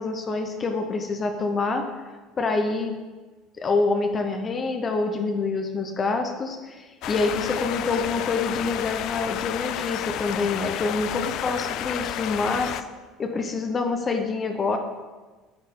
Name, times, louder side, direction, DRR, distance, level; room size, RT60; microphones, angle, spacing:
voice 1, 0.0-1.9 2.4-2.9 3.6-12.8 13.2-14.8, left 3 dB, 25° left, 4 dB, 0.8 m, -26 dB
sound 1, 7.0-12.8, left 11 dB, 55° left, 0.4 m, -31 dB
8.7 x 8.7 x 3.7 m, 1.3 s
cardioid pair, 145°, 0 cm